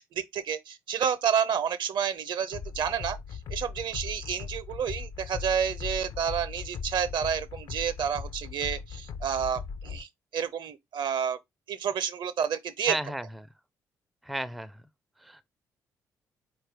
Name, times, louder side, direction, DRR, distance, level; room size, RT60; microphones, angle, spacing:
voice 1, 0.0-3.2 3.5-11.4 11.7-13.0, right 8 dB, 55° right, 0.6 m, -30 dB
sound 1, 2.5-10.0, left 5 dB, 50° left, 0.5 m, -38 dB
voice 2, 12.9-13.5 14.2-14.8 15.2-15.5, right 1 dB, ahead, 0.4 m, -34 dB
4.3 x 2.3 x 4.7 m
figure-of-eight pair, 40°, 9 cm